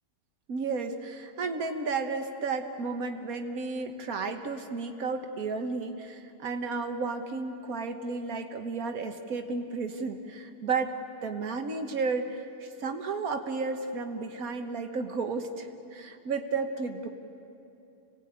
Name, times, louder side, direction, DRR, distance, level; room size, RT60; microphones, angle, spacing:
voice 1, 0.5-17.1, right 4 dB, 85° right, 5 dB, 1.7 m, -33 dB
26.5 x 19.0 x 8.8 m, 2.7 s
omnidirectional pair, 1.5 m